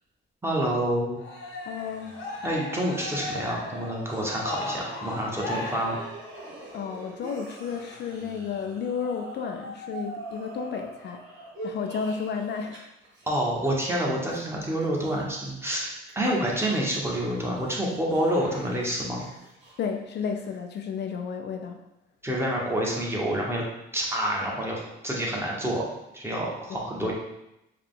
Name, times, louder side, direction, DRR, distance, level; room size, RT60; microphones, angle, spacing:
voice 1, 0.4-1.2 2.4-6.0 13.3-15.9 16.1-19.3 22.2-23.6 23.9-25.8 26.1-27.1, right 1 dB, 10° right, -3 dB, 1.2 m, -28 dB
Cheering, 1.2-6.7, left 2 dB, 80° left, 1.1 m, -37 dB
sound 1, 1.2-12.8 13.0-15.7 16.1-20.6, right 2 dB, 70° right, 1.5 m, -45 dB
voice 2, 1.6-2.2 6.7-11.2 11.6-12.8 19.8-21.8 26.7-27.1, left 6 dB, 60° left, 4 dB, 0.4 m, -32 dB
4.7 x 2.4 x 3.7 m, 0.88 s
cardioid pair, 90°, 20 cm